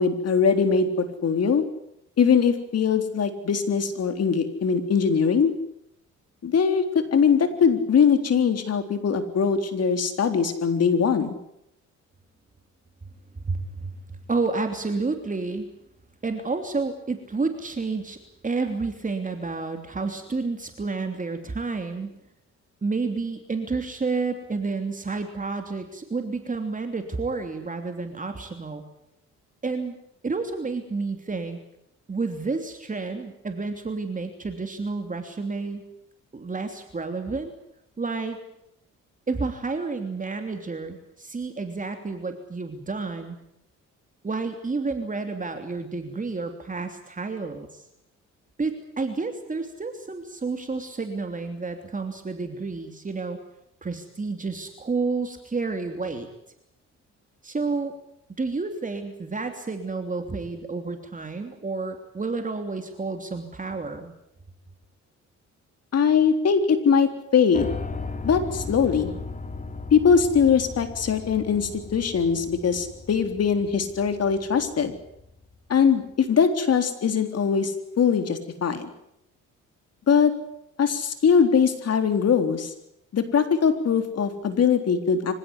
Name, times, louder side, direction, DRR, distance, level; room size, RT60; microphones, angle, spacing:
voice 1, 0.0-1.6 2.2-5.5 6.4-11.4 65.9-67.7 68.2-69.1 69.9-74.9 75.7-78.9 80.1-80.3 80.8-82.7 83.1-85.3, left 6 dB, 55° left, 7 dB, 3.8 m, -21 dB
voice 2, 13.4-13.9 14.3-15.7 16.2-22.1 22.8-28.8 29.6-30.0 30.2-31.6 32.1-35.9 36.3-37.5 38.0-38.4 39.3-43.4 44.2-47.8 48.6-53.4 53.8-56.3 57.4-57.9 58.4-64.1, right 4 dB, 25° right, 5 dB, 3.1 m, -30 dB
Piano, 67.5-75.5, left 3 dB, 25° left, 3.4 m, -37 dB
25.5 x 16.5 x 10.0 m, 0.79 s
cardioid pair, 90°, 30 cm